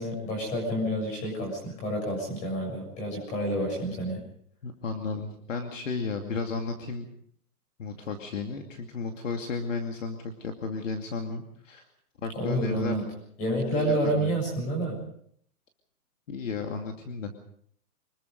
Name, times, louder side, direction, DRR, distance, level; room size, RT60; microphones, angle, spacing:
voice 1, 0.0-4.2 12.3-13.0 13.4-15.0, right 1 dB, 15° left, 1 dB, 7.0 m, -29 dB
voice 2, 4.6-7.1 7.8-11.9 12.2-13.1 13.8-14.4 16.3-17.3, left 4 dB, 55° left, 4 dB, 2.5 m, -33 dB
25.5 x 21.0 x 5.4 m, 0.64 s
hypercardioid pair, 180°, 45 cm